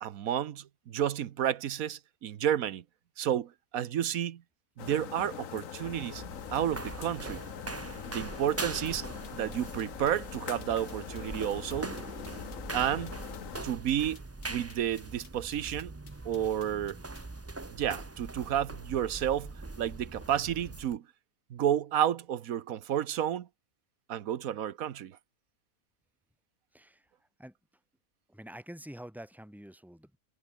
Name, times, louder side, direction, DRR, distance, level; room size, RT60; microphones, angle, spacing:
voice 1, 0.0-2.8 3.2-4.4 4.8-6.2 6.5-7.4 8.1-11.9 12.7-13.2 13.6-14.2 14.5-15.9 16.2-17.0 17.7-21.0 21.5-23.5 24.1-25.2, right 10 dB, 70° right, 1.3 m, -31 dB
sound 1, 4.8-13.6, left 9 dB, 65° left, 1.3 m, -43 dB
sound 2, 5.7-21.0, right 2 dB, 20° right, 0.4 m, -42 dB
sound 3, 8.7-17.3, left 6 dB, 85° left, 2.3 m, -58 dB
voice 2, 26.7-27.1 27.4-27.5 28.3-30.2, equal, ahead, 6.0 m, -47 dB
omnidirectional pair, 1.6 m